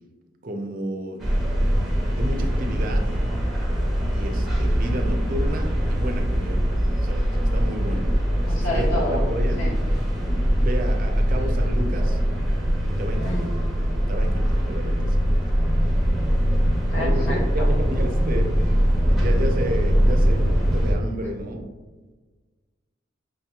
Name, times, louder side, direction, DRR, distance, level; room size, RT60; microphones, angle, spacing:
voice 1, 0.4-1.6 2.0-3.1 4.1-9.6 10.3-12.2 12.9-13.5 14.1-15.3 17.0-21.7, right 1 dB, 45° right, 4 dB, 0.5 m, -32 dB
sound 1, 1.2-20.9, equal, ahead, 0.7 m, -22 dB
voice 2, 8.4-9.2 9.6-9.7 13.2-13.4 16.9-17.6, left 1 dB, 80° left, -4 dB, 1.3 m, -29 dB
5.8 x 2.8 x 2.3 m, 1.3 s
head